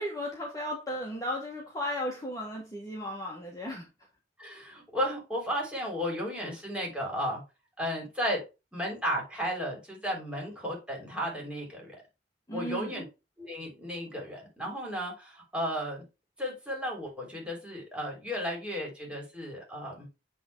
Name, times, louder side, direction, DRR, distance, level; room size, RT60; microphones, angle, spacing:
voice 1, 0.0-3.9 12.5-12.9, equal, 20° left, -2 dB, 1.4 m, -35 dB
voice 2, 4.4-7.4 7.8-8.4 8.7-12.0 12.5-13.0 13.4-16.0 16.4-20.1, equal, 5° right, -2 dB, 3.1 m, -34 dB
8.5 x 3.5 x 4.6 m, 0.28 s
head